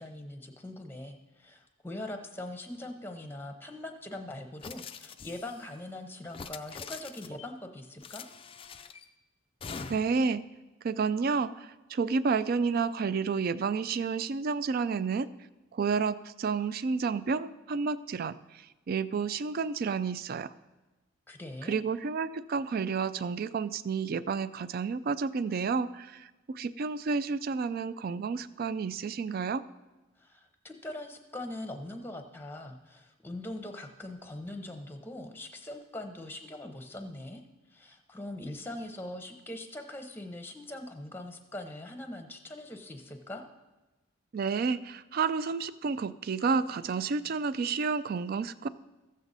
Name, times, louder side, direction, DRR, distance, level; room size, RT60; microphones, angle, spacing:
voice 1, 0.0-8.3 21.3-21.8 30.2-37.4 37.7-43.4, left 1 dB, 10° left, 6 dB, 0.7 m, -42 dB
sound 1, 4.6-5.7 6.3-7.5 8.0-9.1 9.6-10.3, left 5 dB, 25° left, 0.3 m, -44 dB
voice 2, 9.9-10.4 10.8-15.3 15.7-20.5 21.7-29.6 44.3-48.7, right 5 dB, 45° right, 16 dB, 0.3 m, -30 dB
14.0 x 7.4 x 4.1 m, 1.1 s
head